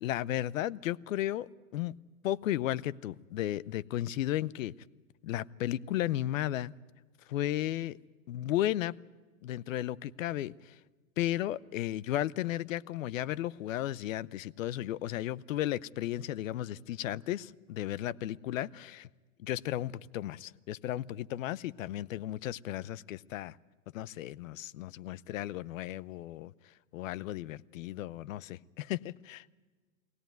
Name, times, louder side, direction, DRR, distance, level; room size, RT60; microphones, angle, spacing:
voice 1, 0.0-2.0 2.2-4.7 5.2-6.7 7.2-8.0 8.3-8.9 9.4-10.8 11.2-19.1 19.4-23.6 23.9-29.5, left 13 dB, 60° left, 19 dB, 0.7 m, -34 dB
22.5 x 17.0 x 9.2 m, 1.4 s
supercardioid pair, 155°, 44 cm